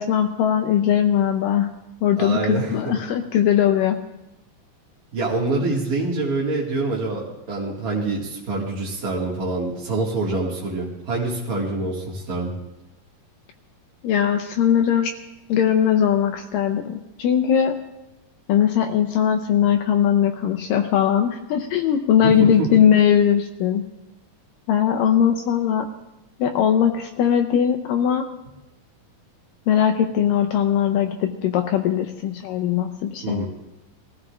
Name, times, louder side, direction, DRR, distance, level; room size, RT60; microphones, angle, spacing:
voice 1, 0.0-1.7 2.0-4.0 14.0-15.1 15.5-17.7 18.5-23.8 24.7-25.9 26.4-28.3 29.7-33.5, left 9 dB, 80° left, 5 dB, 2.2 m, -20 dB
voice 2, 2.2-2.9 5.1-12.5 22.2-22.7 33.2-33.4, right 2 dB, 35° right, -5 dB, 1.7 m, -26 dB
23.0 x 14.5 x 2.4 m, 0.95 s
omnidirectional pair, 4.2 m